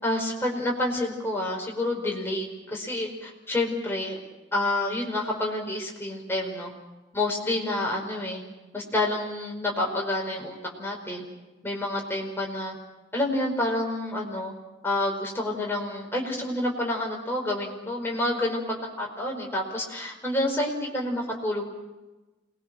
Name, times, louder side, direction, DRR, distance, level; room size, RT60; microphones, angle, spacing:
voice 1, 0.0-4.2 4.5-6.7 7.1-8.4 8.7-11.2 11.6-12.7 13.1-14.5 14.8-21.6, left 1 dB, 10° left, -1 dB, 4.9 m, -28 dB
27.5 x 21.5 x 6.3 m, 1.1 s
head